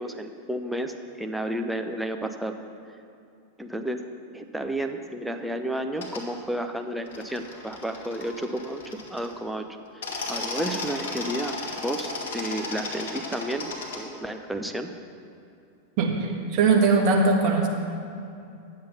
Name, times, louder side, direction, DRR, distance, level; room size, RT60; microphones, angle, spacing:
voice 1, 0.0-2.6 3.6-4.0 4.3-8.8 9.1-9.7 10.3-14.9, right 1 dB, 5° right, 5 dB, 0.6 m, -31 dB
sound 1, 5.9-6.2 7.0-9.4 9.9-14.0, left 3 dB, 60° left, 1.6 m, -35 dB
voice 2, 16.0-17.7, right 4 dB, 40° right, 1 dB, 1.5 m, -21 dB
10.5 x 7.6 x 5.5 m, 2.6 s
figure-of-eight pair, 90°, 0 cm